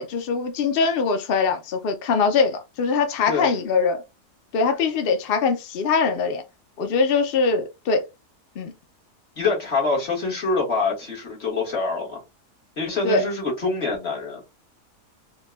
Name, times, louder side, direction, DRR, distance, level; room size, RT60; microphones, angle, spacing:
voice 1, 0.0-4.0 4.5-6.4 6.8-8.0 8.6-8.7 13.0-13.2, left 4 dB, 70° left, 0.5 m, -22 dB
voice 2, 9.4-12.2 12.8-14.4, left 3 dB, 40° left, 1.7 m, -25 dB
4.6 x 2.3 x 2.3 m
omnidirectional pair, 1.7 m